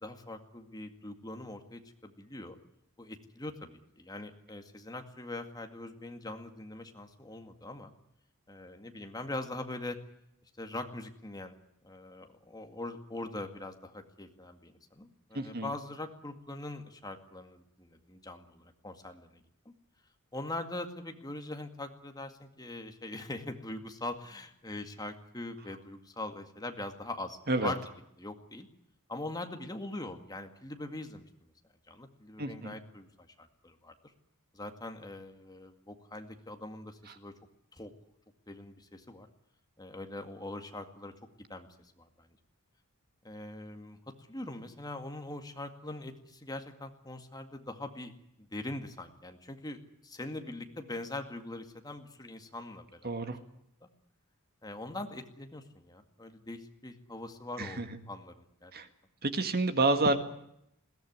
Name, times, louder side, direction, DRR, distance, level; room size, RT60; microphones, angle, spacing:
voice 1, 0.0-2.6 3.0-7.9 8.5-10.0 10.6-11.5 11.8-19.7 20.3-27.8 28.2-28.7 29.1-31.5 31.9-33.9 34.5-37.3 37.7-37.9 38.5-39.3 39.8-41.1 41.4-42.3 43.2-48.1 48.4-53.1 53.8-53.9 54.6-58.7, left 2 dB, 15° left, 6 dB, 2.1 m, -42 dB
voice 2, 15.3-15.7 27.5-27.7 32.4-32.8 53.0-53.4 57.6-57.9 58.7-58.9 59.2-60.2, right 2 dB, 45° right, 8 dB, 1.8 m, -29 dB
21.5 x 18.0 x 9.5 m, 0.79 s
head